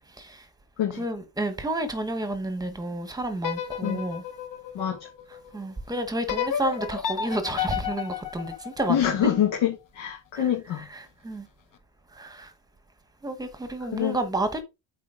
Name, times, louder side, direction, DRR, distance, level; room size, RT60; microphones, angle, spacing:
voice 1, 1.0-4.2 5.5-9.3 10.3-10.4 11.2-11.5 12.1-12.5 13.2-14.6, right 1 dB, 10° right, 1.1 m, -30 dB
sound 1, 3.4-5.6 6.3-9.4, left 8 dB, 40° left, 1.1 m, -32 dB
voice 2, 8.9-10.9 13.9-14.2, left 10 dB, 75° left, 2.1 m, -25 dB
8.5 x 4.3 x 3.8 m
cardioid pair, 150°, 48 cm